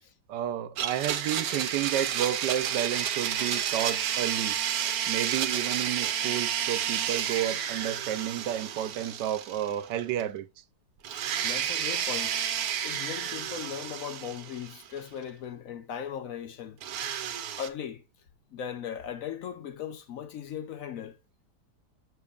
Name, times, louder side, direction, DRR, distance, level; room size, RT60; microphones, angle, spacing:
voice 1, 0.3-4.6 5.1-10.5, right 11 dB, 85° right, 1.3 m, -31 dB
Domestic sounds home sounds, 0.8-9.9 10.2-10.3 11.0-15.0 16.8-17.7, right 9 dB, 65° right, 1.1 m, -31 dB
voice 2, 11.1-12.4 12.8-16.8 17.6-18.0 18.5-21.2, left 8 dB, 65° left, 0.9 m, -38 dB
6.8 x 6.8 x 2.4 m
omnidirectional pair, 1.8 m